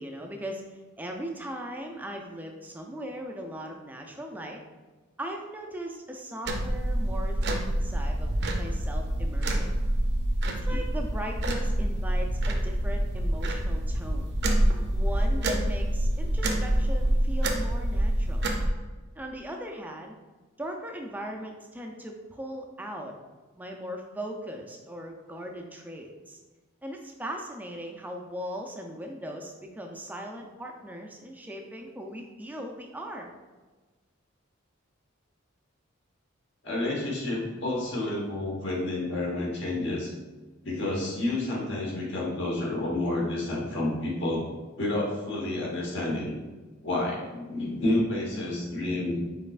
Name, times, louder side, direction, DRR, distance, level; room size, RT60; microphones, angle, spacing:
voice 1, 0.0-4.6 5.2-8.3 8.6-9.7 10.6-14.3 14.9-18.5 19.2-20.1 20.6-23.1 23.6-26.4 26.8-33.3, equal, 10° right, 2 dB, 0.4 m, -39 dB
sound 1, 6.5-18.7, right 1 dB, 50° right, 0.6 m, -26 dB
voice 2, 36.6-40.1 40.6-44.4 44.8-46.3 46.8-49.2, left 2 dB, 55° left, -3 dB, 1.2 m, -29 dB
5.3 x 4.1 x 2.4 m, 1.3 s
head